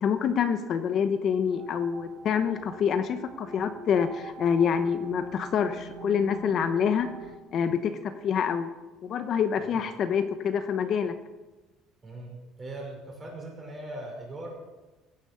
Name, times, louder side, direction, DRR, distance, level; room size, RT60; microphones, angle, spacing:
voice 1, 0.0-7.1 7.5-8.7 9.0-11.1, left 7 dB, 45° left, 9 dB, 0.9 m, -26 dB
sound 1, 1.5-7.4, right 3 dB, 60° right, 1.6 m, -44 dB
voice 2, 12.0-14.5, right 1 dB, 25° right, 0 dB, 5.5 m, -40 dB
16.0 x 10.5 x 6.9 m, 1.2 s
cardioid pair, 135°, 0 cm